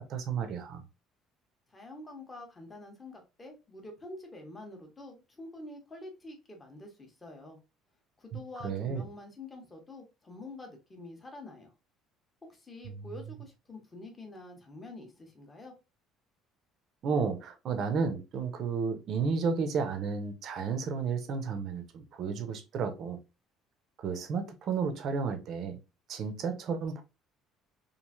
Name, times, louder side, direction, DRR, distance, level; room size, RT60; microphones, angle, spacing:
voice 1, 0.1-0.8 8.6-9.0 13.0-13.1 17.0-23.2 24.0-25.8 26.1-27.0, right 5 dB, 45° right, 0.5 m, -32 dB
voice 2, 1.7-7.6 8.2-11.7 12.5-15.7, left 2 dB, 15° left, 0.8 m, -47 dB
3.0 x 2.5 x 2.4 m
cardioid pair, 165°, 0 cm